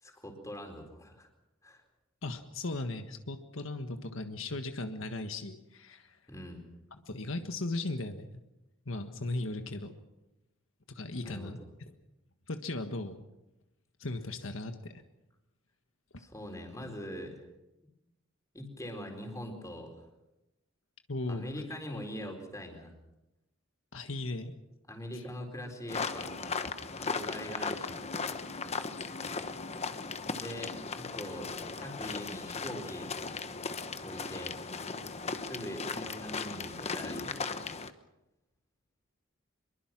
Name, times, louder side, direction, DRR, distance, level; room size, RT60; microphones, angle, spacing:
voice 1, 0.0-1.3 1.6-1.8 6.3-6.6 11.2-11.5 16.2-17.4 18.5-20.0 21.3-22.9 24.9-26.4 27.0-28.0 30.3-33.1 34.0-34.6 35.4-37.5, equal, 15° left, 3 dB, 4.3 m, -42 dB
voice 2, 2.2-6.2 7.0-8.3 8.8-9.9 10.9-11.6 12.5-13.2 14.0-14.9 16.1-16.2 21.1-21.5 23.9-24.5 25.1-25.2, left 2 dB, 80° left, 7 dB, 1.5 m, -37 dB
sound 1, 25.9-37.9, left 4 dB, 30° left, 1.1 m, -37 dB
24.5 x 23.0 x 6.1 m, 0.95 s
head